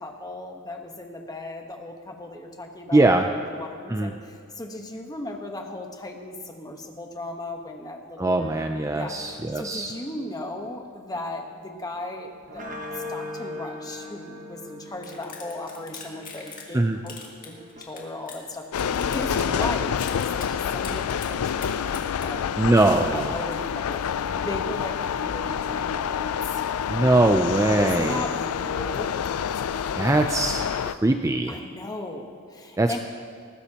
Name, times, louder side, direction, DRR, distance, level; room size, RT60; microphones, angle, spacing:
voice 1, 0.0-8.4 8.9-9.2 9.5-17.1 17.4-22.4 23.1-26.6 27.8-29.2 31.5-33.0, left 2 dB, 20° left, 3 dB, 1.2 m, -37 dB
voice 2, 2.9-3.3 3.9-4.1 8.2-9.9 16.7-17.0 19.6-19.7 22.6-23.3 26.9-28.3 30.0-31.6 32.8-33.0, right 2 dB, 15° right, 5 dB, 0.4 m, -22 dB
sound 1, 8.4-19.5, left 1 dB, 35° right, 1.2 m, -42 dB
sound 2, 15.0-16.8 17.1-18.4 18.7-19.7 20.0-20.5 20.8-22.3, left 6 dB, 40° left, 2.2 m, -41 dB
sound 3, 18.7-31.0, left 8 dB, 85° left, 0.4 m, -28 dB
19.5 x 14.5 x 2.9 m, 2.3 s
head